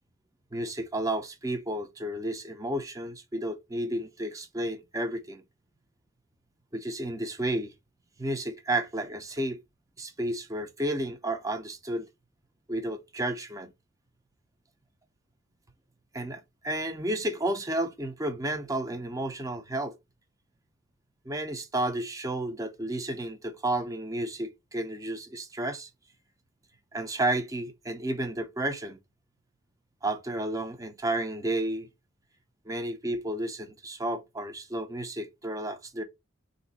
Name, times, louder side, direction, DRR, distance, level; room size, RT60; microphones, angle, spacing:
voice 1, 0.5-5.4 6.7-7.7 8.2-9.6 10.0-12.1 12.7-13.7 16.1-20.0 21.3-25.9 26.9-29.0 30.0-31.9 32.7-36.0, right 1 dB, 15° right, 0.6 m, -32 dB
4.0 x 2.6 x 4.0 m
head